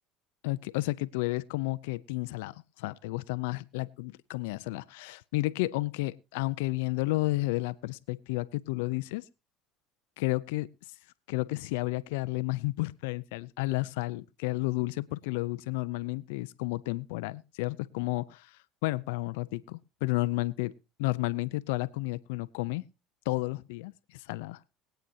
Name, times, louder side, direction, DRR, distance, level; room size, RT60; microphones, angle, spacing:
voice 1, 0.4-9.2 10.2-10.7 11.3-18.5 18.8-20.7 21.0-22.8 23.3-24.6, left 21 dB, 85° left, 17 dB, 0.6 m, -32 dB
21.5 x 9.1 x 2.8 m, 0.28 s
supercardioid pair, 105°, 0 cm